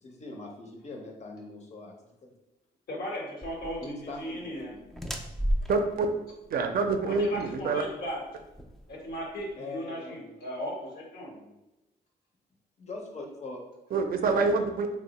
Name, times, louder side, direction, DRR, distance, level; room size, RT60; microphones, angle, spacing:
voice 1, 0.0-2.3 3.8-4.8 9.6-10.3 11.3-11.6 12.8-13.6, left 2 dB, 40° left, 1 dB, 0.8 m, -42 dB
voice 2, 2.9-3.8 4.2-4.7 7.0-8.2 8.9-11.3, equal, 70° left, -2 dB, 1.1 m, -36 dB
sound 1, 3.4-9.5, equal, ahead, 0.4 m, -36 dB
voice 3, 5.7-6.1 6.5-7.8 13.9-14.9, right 4 dB, 60° right, 5 dB, 0.4 m, -26 dB
2.7 x 2.1 x 4.0 m, 0.96 s
cardioid pair, 75°, 17 cm